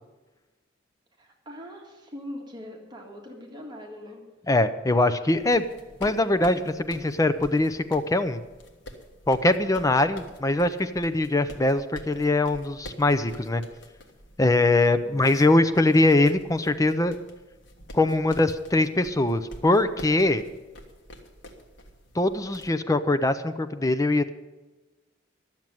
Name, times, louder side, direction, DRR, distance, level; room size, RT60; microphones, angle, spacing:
voice 1, 1.2-4.2 15.0-15.4, left 1 dB, 25° right, 0 dB, 1.9 m, -42 dB
voice 2, 4.5-5.6 6.0-8.4 9.3-13.6 14.4-17.2 17.9-20.4 22.1-24.3, left 2 dB, 20° left, 11 dB, 0.5 m, -22 dB
sound 1, 5.3-22.7, left 1 dB, 65° left, 1.6 m, -47 dB
12.0 x 7.3 x 9.1 m, 1.2 s
head